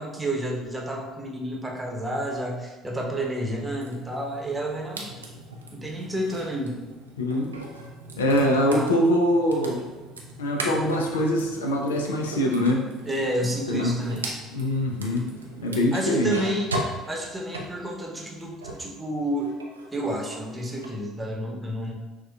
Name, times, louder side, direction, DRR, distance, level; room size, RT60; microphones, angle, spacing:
voice 1, 0.0-5.2 5.7-6.8 8.6-8.9 13.1-14.3 15.9-16.7 17.1-19.6 19.9-21.9, right 1 dB, 15° right, -1 dB, 0.8 m, -30 dB
sound 1, 3.8-18.9 19.3-20.9, right 1 dB, 85° right, 0.4 m, -38 dB
voice 2, 7.2-7.5 8.2-9.9 10.4-12.9 13.4-14.0 14.5-15.3 15.6-16.4, equal, 80° left, 2 dB, 0.4 m, -23 dB
6.0 x 2.2 x 2.3 m, 1.2 s
figure-of-eight pair, 60°, 0 cm